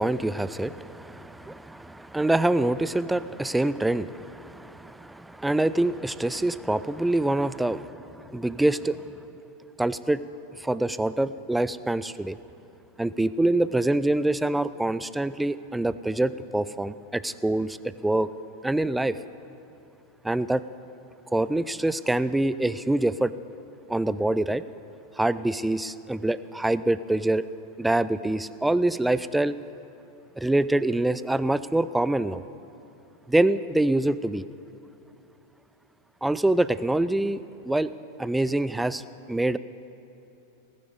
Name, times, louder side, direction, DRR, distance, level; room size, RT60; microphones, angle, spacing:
voice 1, 0.0-8.0 8.3-9.0 9.8-10.2 10.6-12.4 13.0-17.8 18.0-18.3 18.6-19.1 20.2-20.6 21.3-23.3 23.9-24.6 25.2-27.4 27.8-29.6 30.4-32.4 33.3-34.4 36.2-37.4 37.7-37.9 38.2-39.0 39.3-39.6, right 1 dB, 5° right, 16 dB, 0.3 m, -25 dB
19.5 x 9.5 x 5.2 m, 2.9 s
figure-of-eight pair, 90°, 0 cm